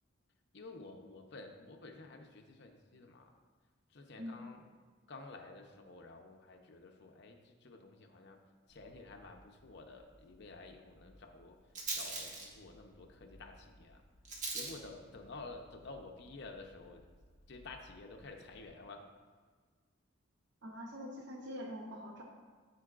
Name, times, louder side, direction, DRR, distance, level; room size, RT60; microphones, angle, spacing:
voice 1, 0.5-3.4 3.9-4.7 5.1-8.4 8.7-11.6 11.9-14.0 14.5-17.1 17.5-19.1, left 3 dB, 55° left, 3 dB, 0.7 m, -51 dB
Rattle, 8.7-18.6, right 3 dB, 40° right, 1.1 m, -47 dB
voice 2, 20.6-22.2, equal, 60° right, 0 dB, 0.8 m, -44 dB
12.5 x 4.6 x 2.5 m, 1.5 s
head